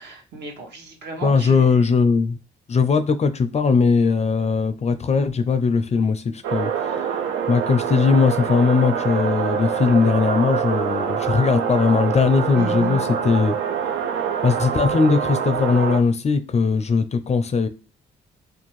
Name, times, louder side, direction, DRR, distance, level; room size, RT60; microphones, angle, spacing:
voice 1, 0.0-1.8 12.5-12.9, right 3 dB, 65° right, 1.0 m, -33 dB
voice 2, 1.2-2.4 2.7-6.9 7.5-13.6 14.4-17.7, left 5 dB, 35° left, 0.4 m, -19 dB
sound 1, 6.4-16.0, right 7 dB, 85° right, 0.4 m, -25 dB
2.6 x 2.2 x 3.0 m
supercardioid pair, 65°, 19 cm